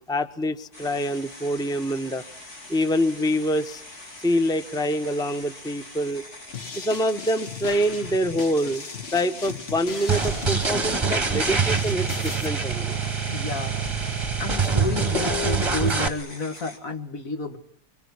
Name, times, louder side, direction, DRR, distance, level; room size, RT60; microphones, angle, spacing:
voice 1, 0.0-2.2 2.7-3.8 4.2-6.2 6.7-8.8 9.1-13.0, equal, 5° left, 11 dB, 0.9 m, -25 dB
sound 1, 0.7-16.8, left 2 dB, 85° left, 4.2 m, -43 dB
sound 2, 6.5-12.5, left 5 dB, 45° left, 1.5 m, -37 dB
sound 3, 10.1-16.1, right 4 dB, 20° right, 1.2 m, -25 dB
voice 2, 13.3-13.8 14.4-17.6, left 3 dB, 65° left, 6 dB, 2.3 m, -31 dB
25.5 x 24.0 x 9.6 m, 0.63 s
omnidirectional pair, 1.6 m